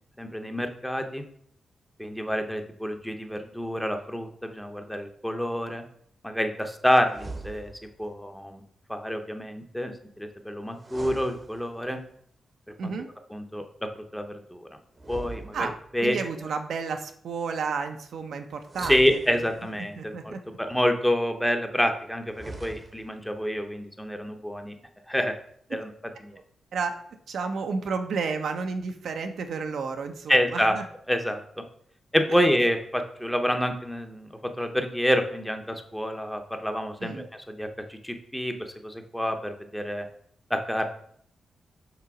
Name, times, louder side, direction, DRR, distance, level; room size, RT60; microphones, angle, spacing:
voice 1, 0.2-1.2 2.0-5.8 6.2-7.7 8.0-8.6 8.9-12.0 12.8-12.9 13.3-14.8 15.1-16.2 18.8-24.7 25.1-25.4 25.7-25.9 26.2-26.4 30.3-30.7 31.1-31.6 32.1-34.3 34.6-40.1 40.5-40.8, equal, ahead, 5 dB, 0.7 m, -28 dB
sound 1, 7.1-8.0 10.7-12.1 14.9-16.1 18.6-19.9 22.2-23.2, right 3 dB, 25° right, 0.8 m, -42 dB
voice 2, 12.8-13.1 15.5-15.7 16.0-19.4 20.0-20.4 26.3-26.4 26.7-27.0 27.3-30.8 32.3-32.4 37.0-37.3, right 5 dB, 75° right, 6 dB, 0.7 m, -31 dB
6.0 x 3.9 x 5.9 m, 0.64 s
wide cardioid pair, 150°, 0 cm